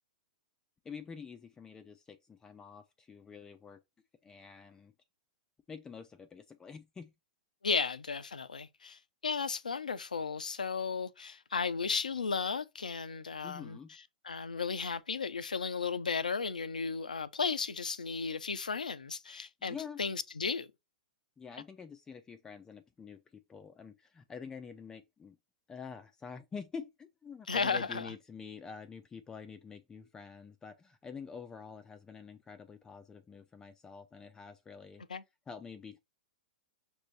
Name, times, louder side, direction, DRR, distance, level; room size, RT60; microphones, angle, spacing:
voice 1, 0.8-3.8 4.2-4.9 5.7-7.1 13.4-14.0 19.6-20.0 21.4-25.4 25.7-35.0 35.5-36.0, left 6 dB, 15° left, 0.4 m, -47 dB
voice 2, 7.6-13.8 14.2-20.7 27.5-28.1 35.1-35.2, left 5 dB, 85° left, 0.5 m, -34 dB
6.0 x 2.7 x 3.2 m
figure-of-eight pair, 110°, 4 cm